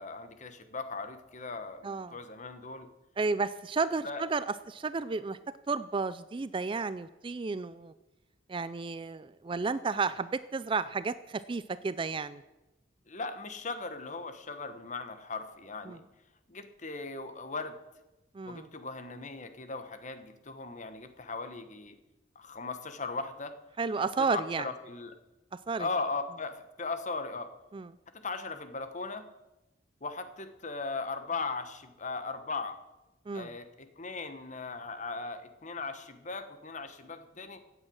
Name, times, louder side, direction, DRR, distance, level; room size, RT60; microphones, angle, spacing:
voice 1, 0.0-2.9 4.0-4.2 13.1-16.0 16.5-17.8 18.4-22.0 22.3-23.5 24.0-25.1 25.8-27.5 28.1-29.3 30.0-32.7 33.3-37.6, left 3 dB, 40° left, 9 dB, 1.2 m, -38 dB
voice 2, 1.8-2.2 3.2-5.4 5.7-7.9 8.5-12.4 15.9-16.0 18.3-18.7 23.8-24.7 25.7-25.9 27.7-27.9 33.3-33.5, right 4 dB, 25° right, 15 dB, 0.4 m, -32 dB
16.0 x 8.9 x 6.3 m, 1.0 s
head